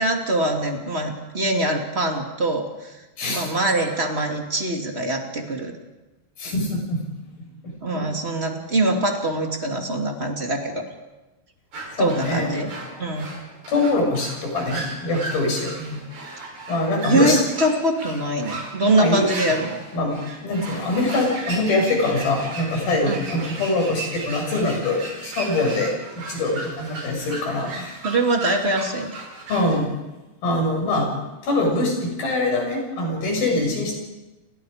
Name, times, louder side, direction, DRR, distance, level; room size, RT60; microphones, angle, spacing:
voice 1, 0.0-3.0 3.3-5.7 7.8-10.8 12.0-12.7 13.0-13.3 17.1-19.8 23.1-23.2 28.0-29.2, right 1 dB, 20° right, 2 dB, 2.1 m, -23 dB
voice 2, 3.2-3.5 6.4-7.0 7.6-8.1 12.0-12.7 13.7-16.0 16.7-17.4 19.0-19.2 19.9-27.9 29.5-29.9 30.4-31.1 31.4-34.0, left 2 dB, 60° left, 0 dB, 8.3 m, -23 dB
sound 1, 11.7-29.8, right 2 dB, 55° right, 7.5 m, -36 dB
29.5 x 26.5 x 5.1 m, 1.1 s
omnidirectional pair, 4.7 m